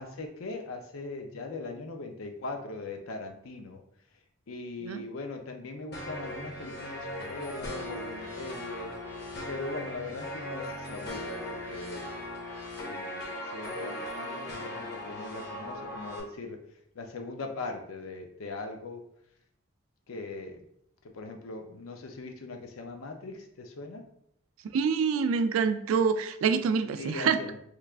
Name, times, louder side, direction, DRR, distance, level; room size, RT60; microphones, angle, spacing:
voice 1, 0.0-3.8 4.5-8.9 9.4-12.1 12.9-16.6 16.9-19.0 20.1-20.6 21.1-24.0 27.0-27.6, left 3 dB, 90° left, 4 dB, 0.5 m, -40 dB
sound 1, 5.9-16.2, left 1 dB, 50° left, 0.7 m, -38 dB
voice 2, 24.7-27.4, right 6 dB, 85° right, 10 dB, 0.3 m, -26 dB
3.2 x 2.4 x 3.3 m, 0.71 s
head